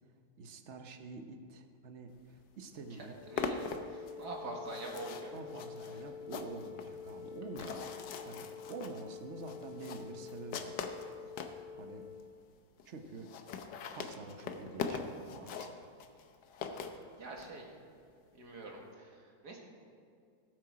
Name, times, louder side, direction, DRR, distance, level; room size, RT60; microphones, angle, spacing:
voice 1, 0.4-3.2 5.3-7.9 8.3-10.9 11.8-12.0 12.8-13.3 13.9-15.9, right 3 dB, 50° right, 6 dB, 1.1 m, -47 dB
sound 1, 2.4-2.5 2.7-11.6 12.2-12.3 12.5-12.6 12.8-12.9 13.1-17.5, left 5 dB, 85° left, 1.4 m, -42 dB
Wind instrument woodwind instrument, 3.1-12.2, left 7 dB, 55° left, 3.9 m, -48 dB
voice 2, 3.9-5.3 7.6-7.7 16.6-16.9 17.2-17.7 18.3-19.2 19.4-19.6, right 2 dB, 75° right, 0 dB, 2.3 m, -44 dB
17.5 x 7.9 x 4.8 m, 2.3 s
omnidirectional pair, 1.8 m